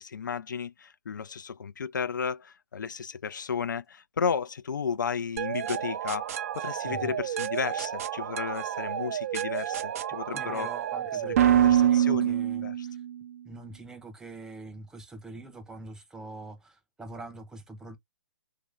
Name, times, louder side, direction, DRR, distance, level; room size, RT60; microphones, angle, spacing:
voice 1, 0.0-10.7 11.5-12.3 12.6-12.9, left 6 dB, 80° left, 0.3 m, -33 dB
sound 1, 5.4-13.2, right 10 dB, 50° right, 0.5 m, -27 dB
voice 2, 6.8-7.2 9.6-9.7 10.3-13.0 13.4-18.0, right 3 dB, 5° right, 0.6 m, -44 dB
2.9 x 2.5 x 3.2 m
figure-of-eight pair, 135°, 10 cm